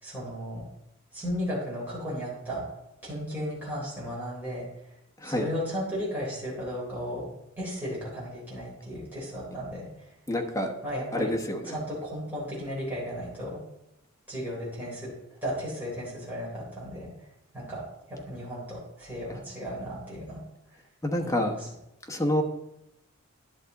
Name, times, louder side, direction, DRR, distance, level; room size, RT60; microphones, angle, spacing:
voice 1, 0.0-0.6 1.1-2.6 3.0-4.6 5.2-7.3 7.6-9.9 10.8-11.3 11.6-13.6 14.3-15.1 15.4-17.1 17.5-17.8 18.1-20.4 21.2-21.6, equal, 10° right, -7 dB, 3.6 m, -35 dB
voice 2, 10.3-10.7 11.1-11.8 21.0-21.5 22.1-22.4, left 1 dB, 15° left, 2 dB, 1.0 m, -27 dB
11.0 x 7.1 x 4.0 m, 0.86 s
head